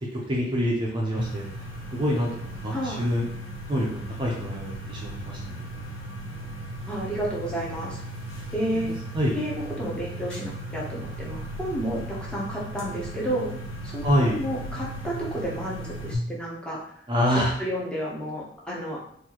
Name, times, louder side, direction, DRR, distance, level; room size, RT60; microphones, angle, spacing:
voice 1, 0.1-1.4 1.9-3.2 3.7-5.7 9.1-9.4 14.0-14.4 17.1-17.5, equal, 25° right, -3 dB, 0.6 m, -26 dB
sound 1, 1.2-16.2, right 1 dB, 75° left, 1.3 m, -37 dB
voice 2, 2.7-3.1 6.9-8.0 8.5-8.9 9.3-13.5 13.8-16.9 17.3-19.0, right 1 dB, 5° left, -5 dB, 0.8 m, -31 dB
4.3 x 2.5 x 2.9 m, 0.68 s
head